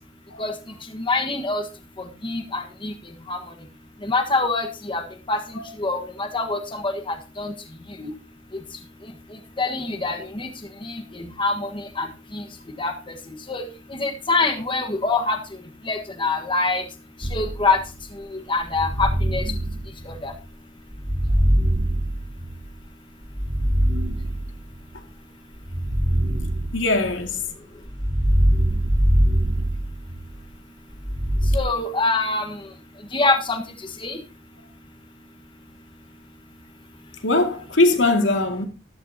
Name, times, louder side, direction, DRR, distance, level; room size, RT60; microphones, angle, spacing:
voice 1, 0.9-1.6 2.2-2.9 3.3-3.4 4.0-5.0 5.3-5.4 5.8-7.5 8.0-8.1 9.6-10.5 10.8-12.1 12.3-12.4 12.8-12.9 13.5-13.7 14.0-15.4 15.9-16.8 17.3-17.8 18.2-19.4 20.0-20.3 31.5-32.6 33.1-33.6 34.0-34.2, left 3 dB, 25° left, 1.4 m, -24 dB
sound 1, 17.2-17.9 18.7-20.4 20.9-22.7 23.3-24.8 25.6-27.3 27.9-30.4 31.0-31.6, equal, 25° right, 1.2 m, -22 dB
voice 2, 26.7-27.4 37.2-38.7, left 2 dB, 85° left, 2.2 m, -20 dB
14.0 x 12.5 x 2.8 m
head